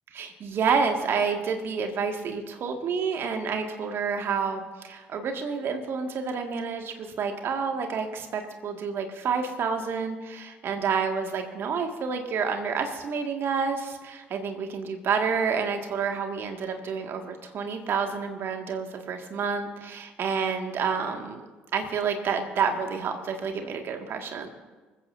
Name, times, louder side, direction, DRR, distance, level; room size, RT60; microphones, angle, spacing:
voice 1, 0.1-21.4 21.7-24.5, right 5 dB, 50° right, 4 dB, 2.1 m, -29 dB
25.5 x 15.5 x 2.7 m, 1.3 s
figure-of-eight pair, 50°, 5 cm